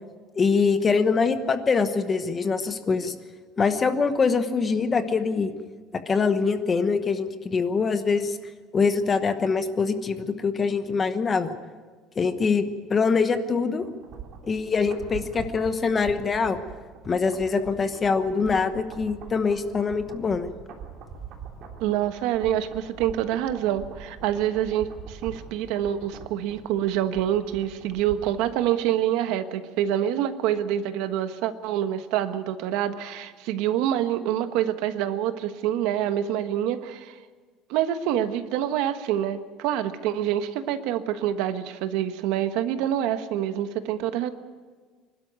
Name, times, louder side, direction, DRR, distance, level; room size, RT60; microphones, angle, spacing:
voice 1, 0.4-3.1 3.6-5.5 6.1-8.4 8.7-11.5 12.1-13.8 14.4-16.6 17.0-20.5, left 5 dB, 20° left, 9 dB, 1.1 m, -24 dB
sound 1, 13.8-28.5 28.8-28.9, right 7 dB, 50° right, 3.4 m, -43 dB
voice 2, 21.8-37.1 37.7-44.3, right 11 dB, 75° right, 9 dB, 1.3 m, -26 dB
25.5 x 12.5 x 9.4 m, 1.5 s
cardioid pair, 170°, 0 cm